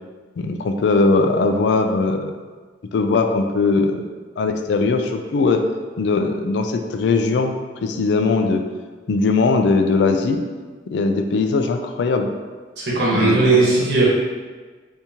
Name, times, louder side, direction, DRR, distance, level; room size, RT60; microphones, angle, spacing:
voice 1, 0.4-2.4 2.9-4.1 4.4-5.6 6.0-7.5 7.8-8.6 9.1-10.4 10.9-12.3 13.1-13.7, left 3 dB, 65° left, 5 dB, 0.3 m, -20 dB
voice 2, 12.8-14.0, right 3 dB, 65° right, -7 dB, 1.1 m, -17 dB
3.5 x 2.7 x 2.8 m, 1.4 s
head